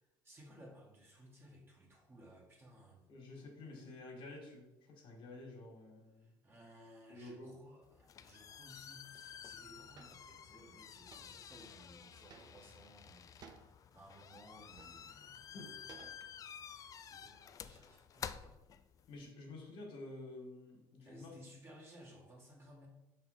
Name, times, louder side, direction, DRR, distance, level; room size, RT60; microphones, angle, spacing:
voice 1, 0.2-3.1 6.2-13.3 13.6-13.7 13.9-15.7 16.1-16.2 16.6-18.6 21.0-22.9, equal, 25° right, -2 dB, 1.8 m, -59 dB
voice 2, 3.1-6.3 7.1-7.5 15.5-15.7 19.1-21.3, left 2 dB, 60° left, 0 dB, 1.8 m, -50 dB
sound 1, 7.8-19.3, left 8 dB, 35° left, 0.3 m, -51 dB
sound 2, 10.0-10.2 11.1-11.4 12.3-12.8 13.4-13.7 14.6-15.2 15.9-16.5, right 5 dB, 45° right, 0.7 m, -57 dB
5.5 x 4.2 x 4.2 m, 0.99 s
supercardioid pair, 95°, 10 cm